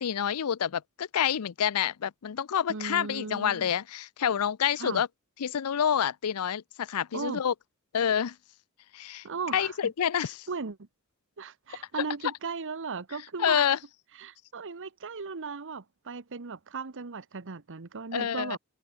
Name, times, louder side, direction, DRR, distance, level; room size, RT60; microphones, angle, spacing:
voice 1, 0.0-5.1 5.4-7.5 7.9-8.4 8.9-9.2 9.5-10.5 13.4-13.8 18.1-18.6, left 8 dB, 85° left, 0.5 m, -28 dB
voice 2, 2.7-3.7 4.8-5.0 7.1-7.4 9.2-9.9 10.2-10.9 11.4-13.7 14.1-18.6, right 4 dB, 60° right, 1.0 m, -37 dB
open air
head